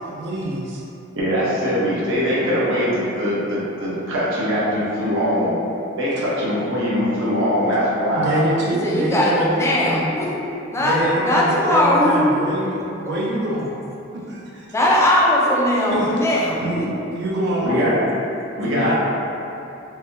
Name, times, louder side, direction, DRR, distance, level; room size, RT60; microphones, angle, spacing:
voice 1, 0.0-0.8 8.1-9.8 10.8-13.7 14.1-14.7 15.9-16.1 16.6-16.9 17.1-18.0 18.6-19.0, right 1 dB, 55° right, -4 dB, 0.4 m, -25 dB
voice 2, 1.2-5.6 6.0-8.4 17.6-18.0 18.6-19.0, equal, 75° right, -8 dB, 0.8 m, -21 dB
voice 3, 8.7-10.3 10.7-12.5 14.7-16.9, left 1 dB, 15° left, -5 dB, 0.3 m, -19 dB
3.3 x 2.1 x 2.7 m, 2.8 s
head